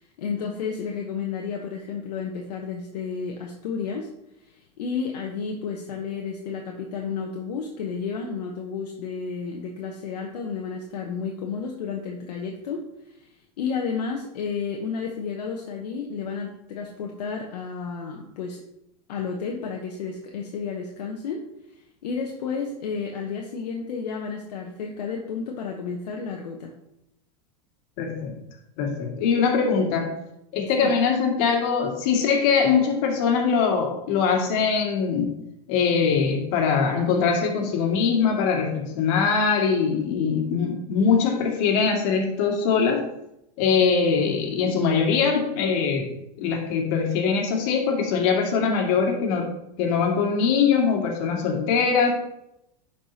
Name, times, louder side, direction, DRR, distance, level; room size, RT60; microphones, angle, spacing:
voice 1, 0.2-4.1 4.4-13.3 13.6-18.6 19.1-21.4 22.0-26.7 30.8-30.9, left 5 dB, 80° left, 1 dB, 0.9 m, -31 dB
voice 2, 28.0-28.4 28.8-30.1 30.5-35.3 35.7-43.0 43.6-46.1 46.4-49.5 49.8-52.1, left 5 dB, 60° left, 1 dB, 2.0 m, -22 dB
11.0 x 4.8 x 2.8 m, 0.82 s
hypercardioid pair, 105°, 20 cm